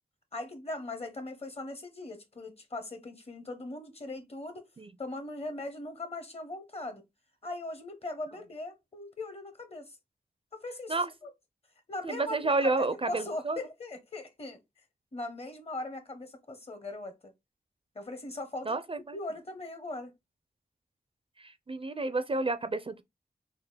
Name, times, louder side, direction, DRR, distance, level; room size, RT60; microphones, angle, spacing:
voice 1, 0.3-4.6 5.0-7.0 7.4-10.0 10.5-11.0 11.2-11.3 11.9-14.6 15.1-17.3 17.9-18.8 19.1-20.1, left 2 dB, 40° left, 0.9 m, -39 dB
voice 2, 12.0-13.6 18.6-19.2 21.4-23.0, right 3 dB, 35° right, 0.4 m, -30 dB
3.6 x 2.1 x 3.3 m
cardioid pair, 45°, 16 cm